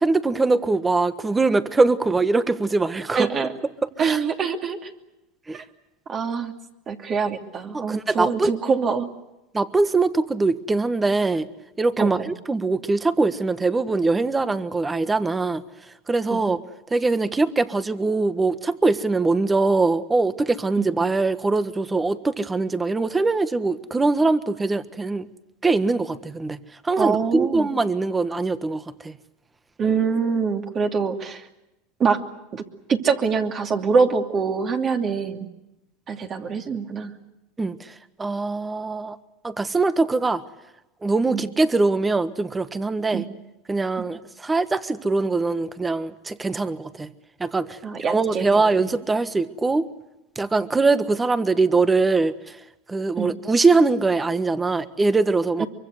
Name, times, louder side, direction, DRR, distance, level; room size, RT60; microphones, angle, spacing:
voice 1, 0.0-3.3 3.8-4.2 5.5-5.6 7.7-8.5 9.5-11.5 11.8-15.6 16.1-16.6 16.9-25.3 25.6-26.6 26.9-29.1 37.6-37.8 38.2-39.2 39.4-40.4 41.0-43.2 43.7-47.1 47.4-47.7 48.1-49.9 50.4-52.3 52.9-55.6, right 3 dB, 15° right, 13 dB, 1.4 m, -22 dB
voice 2, 3.1-3.5 4.0-4.9 5.5-5.6 6.1-6.5 6.9-9.1 12.0-12.3 16.3-16.4 20.8-20.9 27.0-27.7 29.8-31.4 32.0-32.2 32.5-32.6 32.9-35.5 36.1-37.1 41.3-41.4 43.1-43.3 47.8-48.9 53.2-53.3 55.6-55.7, right 5 dB, 35° right, 4 dB, 2.7 m, -24 dB
24.0 x 24.0 x 8.1 m, 0.95 s
supercardioid pair, 110°, 0 cm